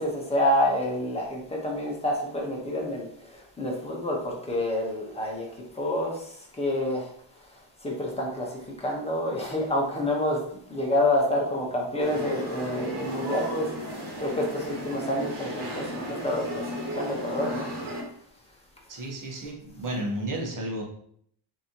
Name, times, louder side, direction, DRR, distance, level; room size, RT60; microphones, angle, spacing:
voice 1, 0.0-7.1 7.4-10.4 10.7-17.7, left 1 dB, 15° left, -2 dB, 1.0 m, -28 dB
sound 1, 12.0-18.0, equal, 55° right, 1.4 m, -34 dB
voice 2, 18.9-20.8, right 1 dB, 40° right, -1 dB, 1.2 m, -32 dB
6.2 x 2.9 x 2.9 m, 0.65 s
wide cardioid pair, 175°, 48 cm